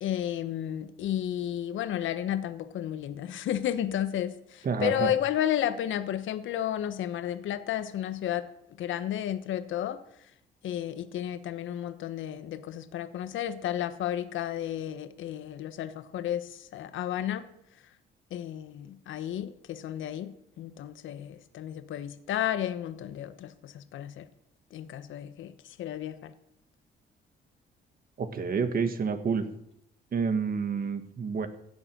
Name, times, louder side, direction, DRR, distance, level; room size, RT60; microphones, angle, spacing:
voice 1, 0.0-8.4 8.8-10.0 10.6-17.4 18.3-20.3 20.6-24.3 24.7-26.3, left 11 dB, 75° left, 11 dB, 1.1 m, -32 dB
voice 2, 4.6-5.1 28.2-29.5 30.1-31.5, right 5 dB, 45° right, 9 dB, 1.7 m, -29 dB
16.5 x 7.9 x 6.2 m, 0.76 s
cardioid pair, 90°, 20 cm